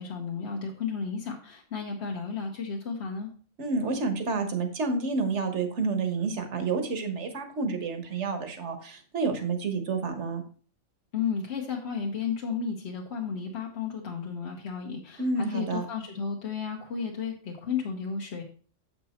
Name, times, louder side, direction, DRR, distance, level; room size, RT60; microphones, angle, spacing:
voice 1, 0.0-3.3 11.1-18.4, left 6 dB, 60° left, 0 dB, 1.3 m, -33 dB
voice 2, 3.6-10.4 15.2-15.9, right 4 dB, 65° right, 7 dB, 1.5 m, -29 dB
7.7 x 6.1 x 4.2 m, 0.42 s
omnidirectional pair, 1.3 m